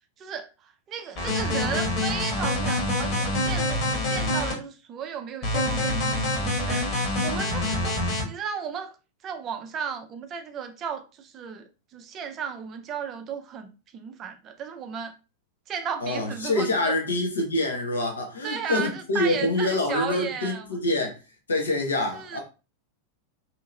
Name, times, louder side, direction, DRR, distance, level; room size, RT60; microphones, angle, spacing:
voice 1, 0.2-9.0 9.2-15.2 15.7-16.9 18.4-20.7 22.1-22.4, right 7 dB, 30° right, 0.4 m, -35 dB
sound 1, 1.1-4.5 5.4-8.2, left 2 dB, 35° left, 1.2 m, -26 dB
voice 2, 16.0-21.2 21.5-22.4, left 2 dB, 70° left, 0.8 m, -26 dB
2.8 x 2.8 x 2.4 m
figure-of-eight pair, 90°, 0 cm